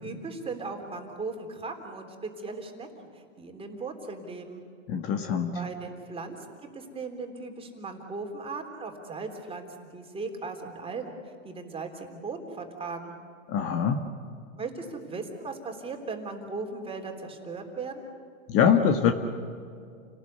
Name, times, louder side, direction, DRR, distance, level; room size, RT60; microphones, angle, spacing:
voice 1, 0.0-4.6 5.5-11.2 11.4-13.2 14.6-18.1, right 4 dB, 15° right, 3 dB, 3.4 m, -38 dB
voice 2, 4.9-5.5 13.5-14.0 18.5-19.1, left 7 dB, 35° left, 6 dB, 1.7 m, -23 dB
29.5 x 18.5 x 8.2 m, 2.3 s
supercardioid pair, 135°, 39 cm